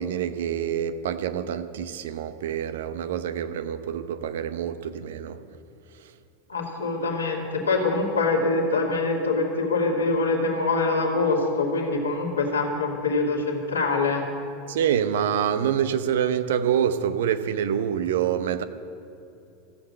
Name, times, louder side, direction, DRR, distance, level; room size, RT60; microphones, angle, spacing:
voice 1, 0.0-5.4 6.0-6.1 14.7-18.6, right 9 dB, 70° right, 11 dB, 0.8 m, -26 dB
voice 2, 6.5-14.2, left 3 dB, 85° left, -1 dB, 2.6 m, -24 dB
15.0 x 7.9 x 9.6 m, 2.7 s
hypercardioid pair, 85°, 0 cm